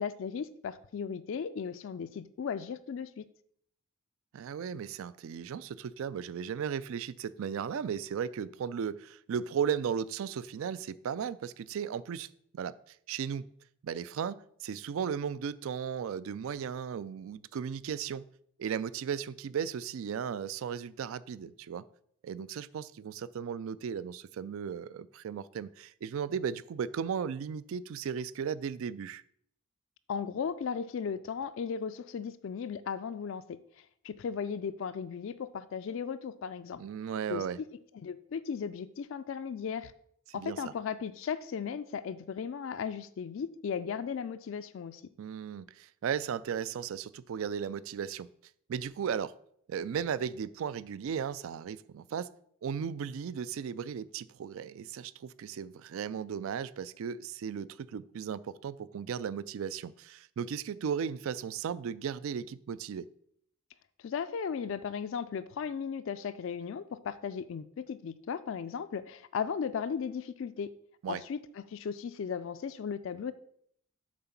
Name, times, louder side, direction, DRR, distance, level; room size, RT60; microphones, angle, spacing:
voice 1, 0.0-3.2 30.1-36.8 37.3-37.7 38.0-39.9 40.3-45.0 64.0-70.7 71.1-73.3, left 6 dB, 60° left, 0.3 m, -36 dB
voice 2, 4.3-12.3 12.5-12.7 13.1-13.5 13.8-18.2 18.6-21.8 22.2-29.2 36.8-37.6 40.3-40.6 45.2-48.3 48.7-49.3 49.7-52.3 52.6-63.1 71.0-71.2, right 7 dB, 65° right, 0.3 m, -36 dB
7.5 x 3.9 x 5.8 m
head